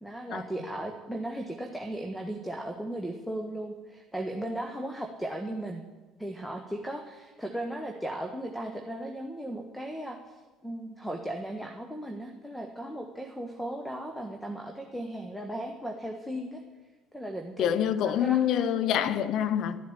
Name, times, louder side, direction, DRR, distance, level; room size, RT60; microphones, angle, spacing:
voice 1, 0.0-5.9 6.2-16.6 17.1-18.5, right 1 dB, 5° left, 1.5 m, -36 dB
voice 2, 17.6-19.8, left 10 dB, 55° left, 1.0 m, -26 dB
13.0 x 11.0 x 7.1 m
figure-of-eight pair, 55°, 0 cm